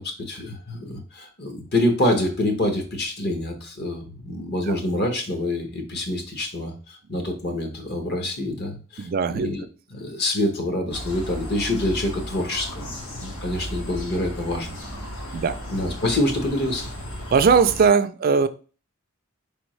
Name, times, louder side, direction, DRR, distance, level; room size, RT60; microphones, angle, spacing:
voice 1, 0.0-9.6 9.9-14.7 15.7-16.9, left 1 dB, 50° left, 3 dB, 1.0 m, -26 dB
voice 2, 9.0-9.5 15.3-15.6 17.3-18.5, right 5 dB, 45° right, 10 dB, 0.4 m, -19 dB
sound 1, 10.9-17.9, equal, 85° left, 1.2 m, -35 dB
4.6 x 3.5 x 3.1 m, 0.37 s
head